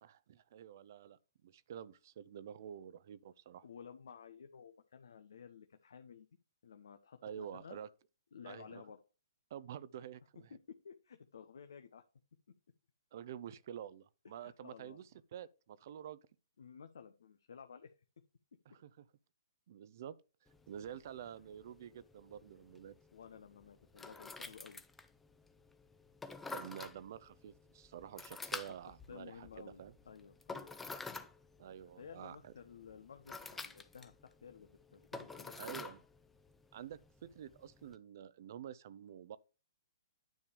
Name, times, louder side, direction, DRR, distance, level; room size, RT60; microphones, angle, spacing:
voice 1, 0.0-3.6 7.2-7.9 8.4-8.8 9.5-10.5 13.1-16.2 18.7-19.1 19.7-20.2 20.7-23.0 26.5-29.9 31.6-32.5 35.6-36.0 36.7-39.4, right 9 dB, 55° right, 0.5 m, -49 dB
voice 2, 3.6-6.3 6.6-7.8 8.3-9.0 10.5-12.0 14.4-15.0 16.6-17.9 23.1-24.8 28.5-28.6 28.9-30.7 32.0-35.5, left 7 dB, 70° left, 0.7 m, -54 dB
sound 1, 20.5-38.0, left 3 dB, 10° left, 0.6 m, -50 dB
9.4 x 3.4 x 6.8 m
hypercardioid pair, 130°, 2 cm